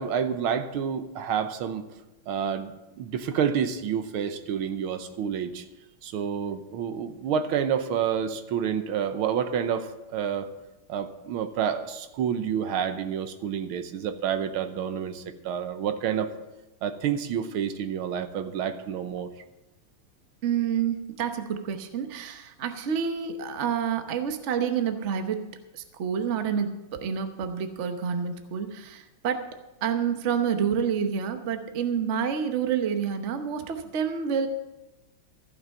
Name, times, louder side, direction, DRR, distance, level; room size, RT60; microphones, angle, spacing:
voice 1, 0.0-1.8 2.3-2.7 3.0-5.7 6.0-10.5 10.9-16.3 16.8-19.3, right 8 dB, 80° right, 9 dB, 1.7 m, -29 dB
voice 2, 20.4-25.4 25.7-29.5 29.8-34.5, right 7 dB, 45° right, 7 dB, 1.0 m, -28 dB
14.5 x 6.3 x 7.5 m, 1.0 s
omnidirectional pair, 2.3 m